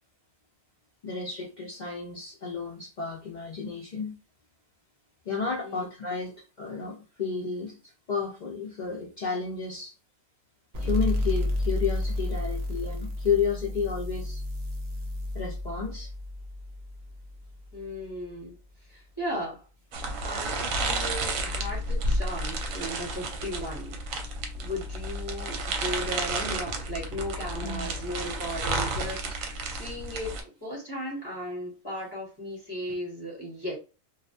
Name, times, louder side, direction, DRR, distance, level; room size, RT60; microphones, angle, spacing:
voice 1, 1.0-4.1 5.3-9.9 10.8-14.4 15.3-16.1 27.6-27.9, left 5 dB, 60° left, -3 dB, 0.4 m, -32 dB
sound 1, 10.7-18.0, left 1 dB, 65° right, 0.4 m, -31 dB
voice 2, 17.7-18.5 18.9-19.7 20.2-24.0 24.5-33.8, equal, 20° left, -4 dB, 0.9 m, -36 dB
sound 2, 19.9-30.4, right 2 dB, 80° right, 1.0 m, -31 dB
2.4 x 2.1 x 2.6 m, 0.32 s
omnidirectional pair, 1.4 m